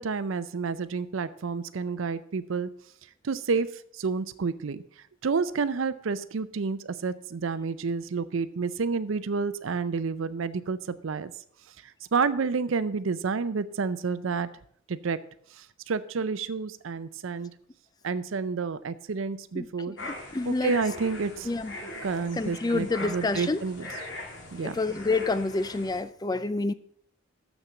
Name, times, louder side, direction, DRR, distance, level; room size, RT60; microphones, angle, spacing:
voice 1, 0.0-2.7 3.2-4.8 5.2-11.3 11.8-14.5 14.9-15.2 15.6-17.5 18.0-20.0 20.5-21.5 22.0-23.8 24.5-24.8, right 5 dB, 75° right, 0.5 m, -29 dB
voice 2, 19.5-20.7 21.4-21.8 22.3-23.7 24.6-26.7, left 3 dB, 20° left, 0.4 m, -28 dB
sound 1, 20.0-26.0, left 2 dB, 60° left, 2.1 m, -41 dB
7.2 x 6.7 x 7.3 m
head